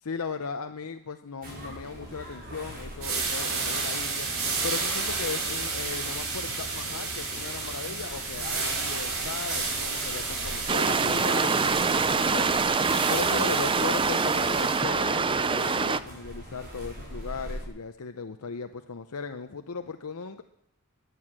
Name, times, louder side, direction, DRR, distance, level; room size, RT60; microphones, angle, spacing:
voice 1, 0.0-20.4, left 5 dB, 75° left, 8 dB, 0.7 m, -37 dB
sound 1, 1.4-17.7, equal, 45° right, 6.1 m, -43 dB
sound 2, 3.0-14.8, right 4 dB, 65° right, 4.1 m, -32 dB
sound 3, 10.7-16.0, right 4 dB, 25° right, 0.5 m, -25 dB
15.0 x 11.0 x 7.5 m, 0.77 s
head